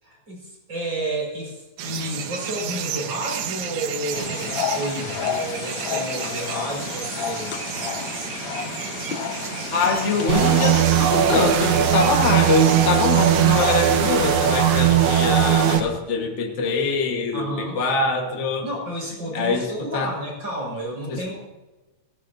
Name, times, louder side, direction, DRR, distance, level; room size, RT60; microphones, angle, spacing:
voice 1, 0.0-7.6 17.3-17.8 18.6-21.4, right 1 dB, 40° right, -2 dB, 5.7 m, -31 dB
sound 1, 1.8-14.0, right 9 dB, 75° right, 2.2 m, -32 dB
sound 2, 4.1-10.7, left 7 dB, 85° left, 1.0 m, -31 dB
voice 2, 9.7-18.6 19.3-20.1 21.1-21.4, left 4 dB, 40° left, 1 dB, 1.0 m, -24 dB
sound 3, 10.3-15.8, right 9 dB, 60° right, 1.7 m, -18 dB
17.5 x 16.5 x 2.7 m, 1.1 s
omnidirectional pair, 3.3 m